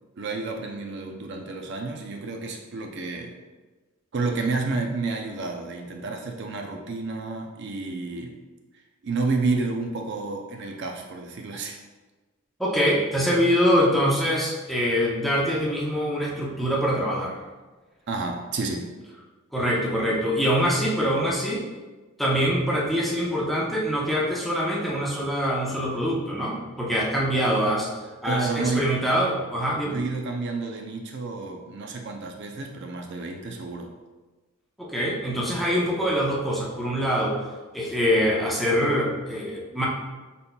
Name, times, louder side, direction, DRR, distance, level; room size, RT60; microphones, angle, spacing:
voice 1, 0.2-3.3 4.1-8.4 9.0-11.8 18.1-18.9 28.2-28.9 29.8-33.9, right 3 dB, 55° right, 3 dB, 0.5 m, -30 dB
voice 2, 12.6-17.4 19.5-21.6 22.2-27.9 28.2-30.0 34.8-37.4 37.7-39.9, equal, ahead, -4 dB, 0.6 m, -24 dB
5.2 x 4.1 x 2.3 m, 1.2 s
head